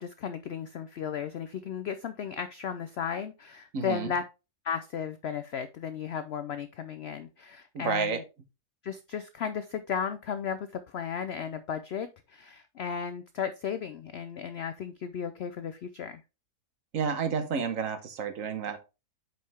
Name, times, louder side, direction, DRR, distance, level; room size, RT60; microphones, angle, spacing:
voice 1, 0.0-4.2 4.6-8.2 8.8-16.2, left 7 dB, 75° left, 11 dB, 0.5 m, -35 dB
voice 2, 3.7-4.1 7.7-8.2 16.9-18.8, right 6 dB, 55° right, 8 dB, 1.5 m, -30 dB
7.7 x 5.1 x 3.4 m, 0.28 s
omnidirectional pair, 1.7 m